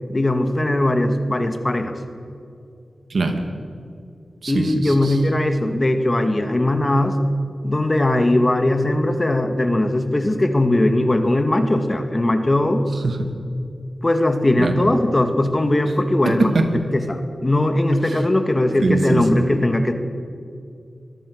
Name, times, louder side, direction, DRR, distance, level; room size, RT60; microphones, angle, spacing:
voice 1, 0.1-1.9 4.5-7.2 7.6-12.8 14.0-16.5 16.9-19.9, left 1 dB, 30° left, 7 dB, 2.1 m, -19 dB
voice 2, 3.1-3.4 4.4-5.2 13.0-13.3 14.6-14.7 16.2-16.8 18.1-18.2 18.8-19.4, right 3 dB, 70° right, 5 dB, 2.7 m, -22 dB
25.0 x 19.0 x 6.6 m, 2.4 s
wide cardioid pair, 75°, 0 cm